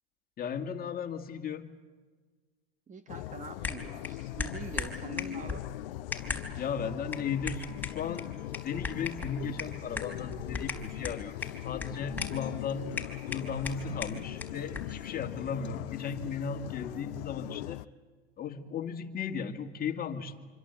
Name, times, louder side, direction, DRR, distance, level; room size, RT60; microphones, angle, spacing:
voice 1, 0.4-1.7 6.6-8.4 8.6-12.9 13.2-17.8 18.4-20.4, left 6 dB, 30° left, 5 dB, 2.3 m, -36 dB
voice 2, 2.9-5.7, right 5 dB, 25° right, 9 dB, 1.5 m, -44 dB
sound 1, 3.1-17.9, left 15 dB, 60° left, 0.8 m, -40 dB
sound 2, 3.6-15.0, left 4 dB, 5° left, 4.5 m, -40 dB
Acoustic guitar, 8.1-16.1, left 8 dB, 85° left, 1.2 m, -50 dB
26.5 x 25.5 x 8.3 m, 1.4 s
hypercardioid pair, 90°, 31 cm